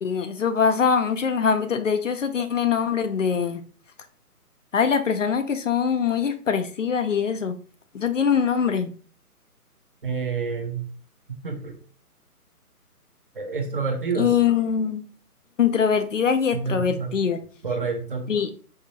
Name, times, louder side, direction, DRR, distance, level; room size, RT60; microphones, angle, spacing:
voice 1, 0.0-3.6 4.7-7.5 7.9-8.9 14.2-15.0 15.6-17.4 18.3-18.5, left 7 dB, 55° left, 8 dB, 0.6 m, -23 dB
voice 2, 10.0-10.9 11.4-11.8 13.4-14.4 16.5-17.2 17.6-18.3, right 5 dB, 35° right, 3 dB, 0.7 m, -28 dB
4.8 x 2.6 x 2.8 m, 0.40 s
figure-of-eight pair, 145°, 45 cm